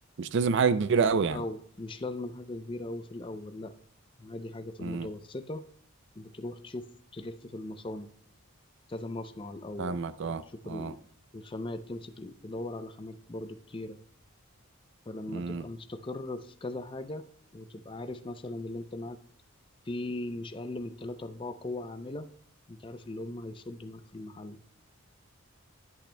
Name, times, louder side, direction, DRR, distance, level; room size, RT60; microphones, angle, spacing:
voice 1, 0.2-1.4 4.8-5.1 9.8-10.9 15.3-15.7, right 5 dB, 55° right, 0.4 m, -28 dB
voice 2, 1.1-3.8 4.2-5.7 6.2-8.1 8.9-11.0 11.3-14.0 15.1-17.3 17.5-19.2 19.9-22.3 22.7-24.6, left 2 dB, 25° left, 0.4 m, -39 dB
13.5 x 8.5 x 2.2 m
head